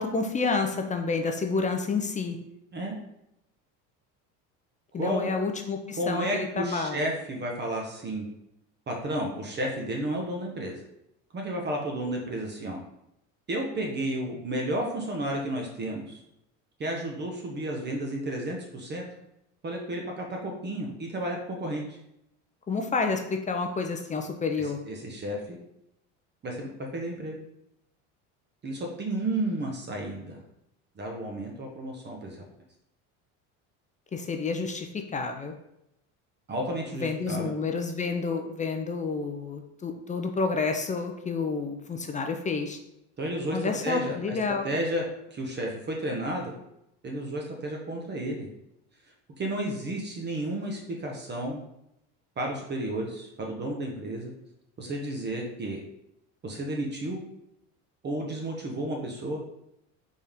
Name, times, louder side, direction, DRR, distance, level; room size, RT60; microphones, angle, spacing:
voice 1, 0.0-2.4 4.9-7.0 22.7-24.8 34.1-35.5 37.0-42.8 43.5-44.6, left 4 dB, 20° left, 4 dB, 0.5 m, -29 dB
voice 2, 5.0-5.3 6.0-8.2 8.9-10.7 11.3-12.8 13.5-16.2 16.8-19.0 19.6-22.0 24.9-25.6 26.4-27.4 28.6-30.4 31.0-32.4 36.5-37.5 43.2-44.4 44.6-46.5 47.0-48.5 49.4-51.6 52.4-54.3 54.8-55.8 56.4-57.2 58.0-59.4, right 1 dB, 30° right, 0 dB, 0.9 m, -32 dB
4.1 x 3.6 x 3.5 m, 0.83 s
supercardioid pair, 110°, 36 cm